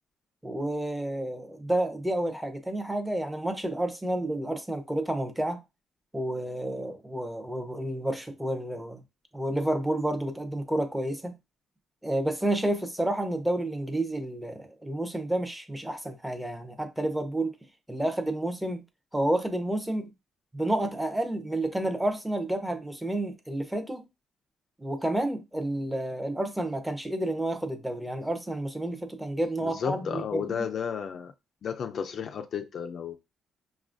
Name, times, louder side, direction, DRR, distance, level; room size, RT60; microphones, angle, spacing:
voice 1, 0.4-5.6 6.1-9.0 9.3-11.3 12.0-17.5 17.9-18.8 19.1-20.1 20.5-24.0 24.8-30.7, right 1 dB, 5° right, 0.6 m, -30 dB
voice 2, 29.6-31.3 31.6-33.2, left 7 dB, 50° left, 0.3 m, -33 dB
5.6 x 2.3 x 2.4 m
cardioid pair, 140°, 0 cm